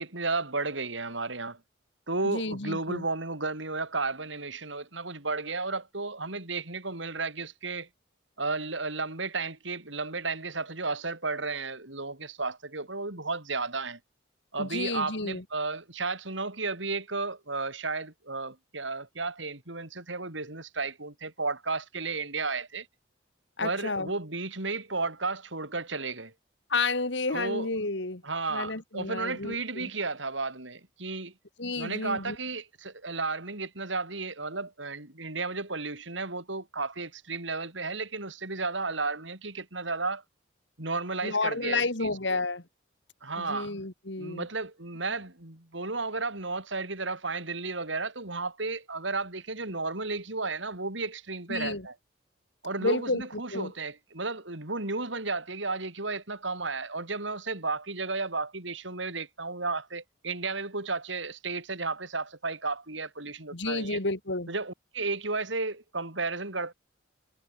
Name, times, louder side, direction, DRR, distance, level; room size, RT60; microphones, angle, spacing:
voice 1, 0.0-1.6 2.1-7.9 8.4-14.0 14.5-22.9 23.6-26.3 27.3-27.7 28.2-31.3 31.8-40.2 40.8-42.4 43.2-43.7 44.2-51.9 52.6-64.0 64.5-66.7, right 3 dB, 80° right, 4.3 m, -33 dB
voice 2, 2.2-3.0 14.6-15.4 23.6-24.1 26.7-28.2 28.5-29.9 31.6-32.4 41.2-42.6 43.4-44.5 51.5-51.9 52.8-53.2 53.5-53.7 63.5-64.5, left 3 dB, 70° left, 2.6 m, -31 dB
head